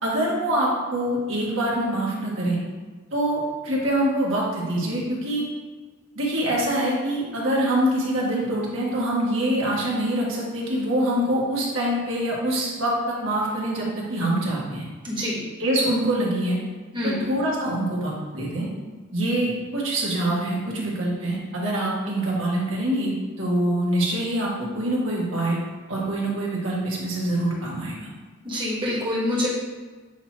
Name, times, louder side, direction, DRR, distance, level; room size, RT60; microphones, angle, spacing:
voice 1, 0.0-2.6 3.1-5.4 6.1-14.8 15.6-16.6 17.0-18.7 19.1-23.1 23.4-25.6 25.9-28.1, right 1 dB, 70° right, -4 dB, 1.7 m, -25 dB
voice 2, 15.0-15.4 16.9-17.2 28.4-29.5, left 1 dB, 25° right, -5 dB, 1.5 m, -26 dB
8.1 x 3.0 x 4.3 m, 1.4 s
head